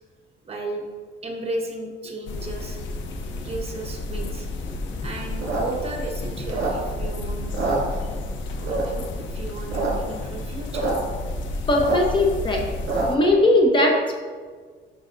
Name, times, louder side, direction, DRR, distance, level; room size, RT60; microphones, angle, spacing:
voice 1, 0.4-0.9 1.2-2.8 3.4-4.5 5.0-8.1 8.6-10.9, right 2 dB, 30° right, -1 dB, 1.2 m, -34 dB
sound 1, 2.3-13.2, left 2 dB, 70° left, 0.8 m, -31 dB
sound 2, 5.3-7.1 7.4-8.3 8.7-9.1 9.5-9.9 10.2-10.3 10.4-10.9 11.3-13.3, right 3 dB, 60° right, 2.2 m, -27 dB
voice 2, 11.7-12.7 13.1-14.1, left 1 dB, 25° left, 1 dB, 0.9 m, -19 dB
12.0 x 5.5 x 2.6 m, 1.5 s
cardioid pair, 145°, 20 cm